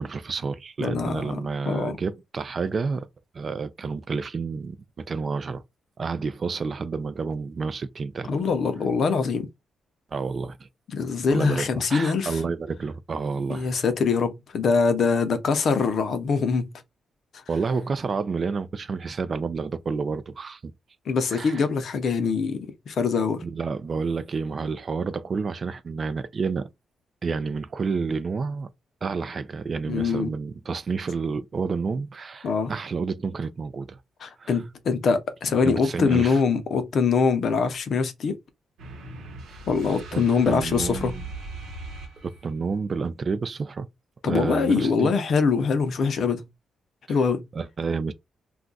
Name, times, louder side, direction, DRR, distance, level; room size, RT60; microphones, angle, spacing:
voice 1, 0.0-3.1 3.3-5.6 6.0-8.4 10.1-10.7 11.3-13.7 17.5-20.7 21.3-21.6 23.4-26.7 27.2-28.7 29.0-34.0 34.4-34.6 35.6-36.4 39.5-39.6 40.1-41.2 42.2-43.9 44.2-45.1 47.1-47.2 47.5-48.1, right 4 dB, 35° right, 0.3 m, -30 dB
voice 2, 0.8-1.4 1.7-2.0 8.3-9.5 10.9-12.4 13.5-16.7 21.1-23.4 29.9-30.3 32.4-32.7 34.2-38.4 39.7-41.1 44.2-46.4 47.1-47.4, left 5 dB, 55° left, 0.6 m, -23 dB
sound 1, 38.8-42.6, right 2 dB, 90° right, 1.0 m, -39 dB
2.4 x 2.3 x 3.8 m
cardioid pair, 145°, 0 cm